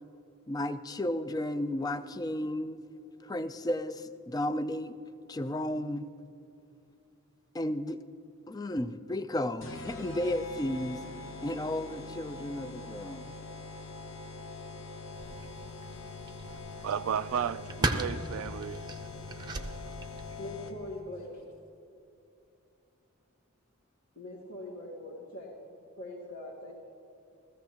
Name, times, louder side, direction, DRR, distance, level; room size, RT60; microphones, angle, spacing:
voice 1, 0.5-2.8 3.2-5.0 5.3-6.1 7.5-8.0 8.5-11.0 11.4-13.3, left 1 dB, 20° left, 0.3 m, -33 dB
sound 1, 9.6-21.0, left 3 dB, 75° left, 1.1 m, -43 dB
sound 2, 15.1-20.5, right 2 dB, 20° right, 0.6 m, -37 dB
voice 2, 16.4-18.8, right 8 dB, 90° right, 0.3 m, -34 dB
voice 3, 20.4-21.4 24.1-26.7, left 1 dB, 55° left, 1.5 m, -42 dB
16.0 x 14.5 x 2.9 m
head